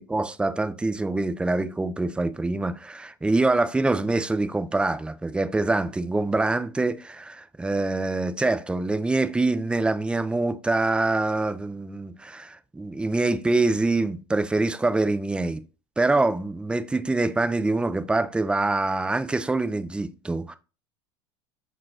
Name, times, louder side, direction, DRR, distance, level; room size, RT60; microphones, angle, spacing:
voice 1, 0.0-15.6 16.0-20.6, right 2 dB, 5° right, 0.3 m, -25 dB
5.6 x 2.4 x 2.4 m
hypercardioid pair, 95°, 14 cm